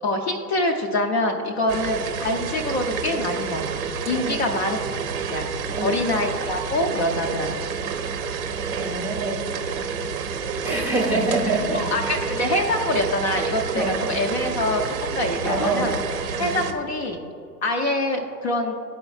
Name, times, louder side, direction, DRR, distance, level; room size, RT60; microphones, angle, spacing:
voice 1, 0.0-3.8 4.1-4.8 5.3-5.5 5.8-7.6 11.7-16.0 16.4-17.2 17.6-18.7, left 1 dB, 40° left, 3 dB, 0.7 m, -25 dB
sound 1, 1.7-16.7, right 5 dB, 40° right, 0.6 m, -29 dB
voice 2, 8.7-9.5 10.6-11.8 13.7-13.9 15.5-15.9 16.3-16.4, right 2 dB, 5° right, -4 dB, 0.8 m, -25 dB
11.5 x 4.5 x 2.4 m, 2.7 s
figure-of-eight pair, 110°, 49 cm